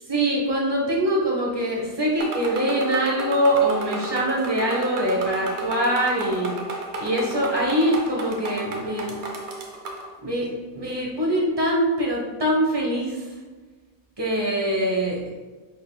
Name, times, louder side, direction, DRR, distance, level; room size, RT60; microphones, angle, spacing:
voice 1, 0.1-6.6 7.0-9.2 10.2-13.3 14.2-15.2, right 1 dB, 25° right, -3 dB, 0.7 m, -23 dB
sound 1, 2.2-10.1, right 2 dB, 60° right, 0.9 m, -33 dB
4.8 x 4.5 x 2.2 m, 1.3 s
omnidirectional pair, 1.4 m